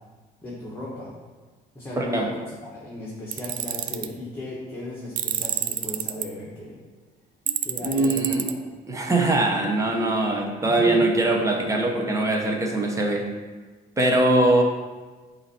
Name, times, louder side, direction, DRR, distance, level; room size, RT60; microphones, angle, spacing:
voice 1, 0.4-1.1 1.7-2.3 2.6-6.8 7.6-8.6 10.7-11.0, left 1 dB, 15° left, -7 dB, 1.4 m, -36 dB
voice 2, 1.9-2.3 7.5-7.6 7.8-8.4 8.9-13.2 14.0-14.6, right 2 dB, 20° right, 1 dB, 1.0 m, -22 dB
Tools, 3.3-4.1 5.2-6.3 7.5-8.5, right 10 dB, 50° right, 0.4 m, -28 dB
7.6 x 2.8 x 4.4 m, 1.3 s
cardioid pair, 110°, 17 cm